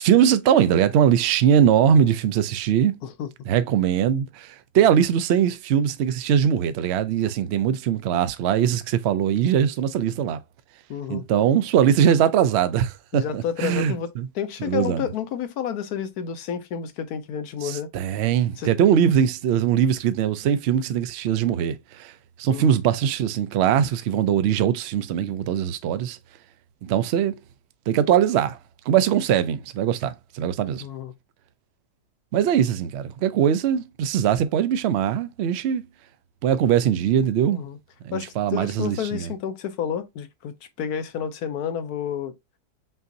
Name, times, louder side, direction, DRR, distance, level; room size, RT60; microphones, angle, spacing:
voice 1, 0.0-3.0 3.5-10.4 11.1-14.3 14.6-15.0 17.6-22.1 22.4-26.2 26.8-27.4 27.9-28.6 28.9-30.8 32.3-35.8 36.4-37.6 38.0-39.3, right 9 dB, 80° right, 0.6 m, -21 dB
voice 2, 10.9-11.2 13.1-14.1 14.3-17.9 18.6-18.7 22.5-22.8 30.8-31.1 37.4-37.8 38.1-42.3, left 8 dB, 75° left, 1.2 m, -30 dB
5.9 x 2.5 x 2.7 m
omnidirectional pair, 1.7 m